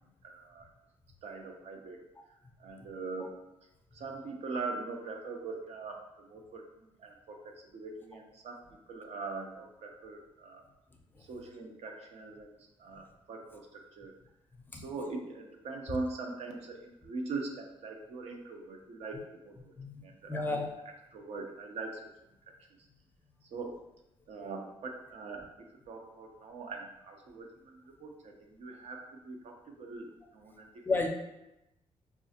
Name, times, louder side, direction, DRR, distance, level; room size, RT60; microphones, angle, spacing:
voice 1, 0.2-0.7 1.2-2.0 2.6-3.3 3.9-8.6 8.9-10.6 11.3-14.2 14.7-22.0 23.4-23.8 24.3-30.8, right 3 dB, 70° right, 2 dB, 0.6 m, -42 dB
voice 2, 19.8-20.7 30.9-31.1, left 3 dB, 20° left, 2 dB, 0.4 m, -31 dB
5.3 x 2.4 x 2.8 m, 0.91 s
cardioid pair, 160°, 11 cm